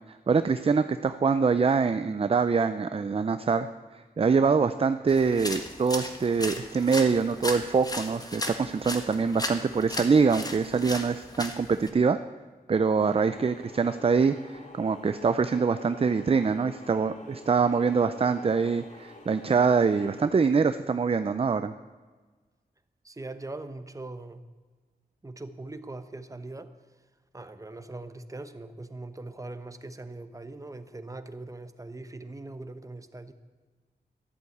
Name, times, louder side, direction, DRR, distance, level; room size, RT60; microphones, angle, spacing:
voice 1, 0.3-3.7 4.2-12.2 12.7-21.7, right 5 dB, 35° right, 11 dB, 0.5 m, -24 dB
sound 1, 5.1-11.9, left 1 dB, 25° left, 1.5 m, -36 dB
sound 2, 13.0-20.3, left 2 dB, 45° left, 2.3 m, -48 dB
voice 2, 23.0-24.4 25.2-26.7 27.3-33.3, right 2 dB, 20° right, 10 dB, 1.0 m, -41 dB
13.0 x 11.5 x 8.0 m, 1.4 s
wide cardioid pair, 110°, 16 cm